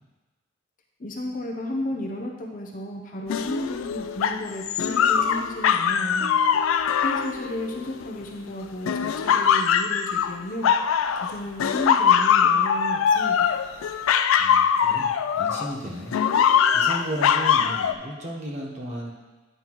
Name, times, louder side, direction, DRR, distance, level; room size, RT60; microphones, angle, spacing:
voice 1, 1.0-6.4 7.0-10.7 11.1-13.5, left 1 dB, 40° left, 1 dB, 0.7 m, -33 dB
sound 1, 3.3-8.3 8.9-11.3 11.6-15.7 16.1-17.9, left 7 dB, 85° left, 0.3 m, -22 dB
voice 2, 14.4-16.2 16.7-19.1, equal, 35° right, -2 dB, 1.0 m, -34 dB
9.2 x 5.6 x 3.0 m, 1.2 s
head